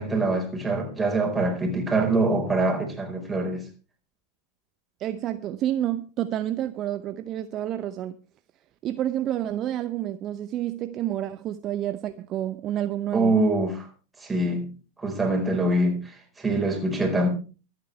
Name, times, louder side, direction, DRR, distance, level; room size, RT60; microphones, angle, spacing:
voice 1, 0.0-3.7 13.1-13.9 14.2-14.7 15.0-17.3, right 2 dB, 10° right, 4.5 m, -24 dB
voice 2, 5.0-8.1 8.8-13.3, right 12 dB, 35° right, 0.7 m, -29 dB
23.5 x 9.0 x 3.3 m
figure-of-eight pair, 90°, 0 cm